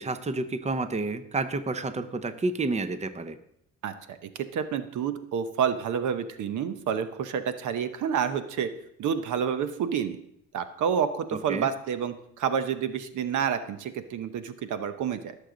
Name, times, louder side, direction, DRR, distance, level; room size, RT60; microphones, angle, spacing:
voice 1, 0.0-3.4 11.5-11.7, right 3 dB, 20° right, 11 dB, 0.8 m, -30 dB
voice 2, 3.8-8.7 9.0-10.2 10.5-15.3, right 7 dB, 75° right, 10 dB, 0.9 m, -29 dB
16.5 x 6.7 x 3.9 m, 0.74 s
cardioid pair, 90°, 30 cm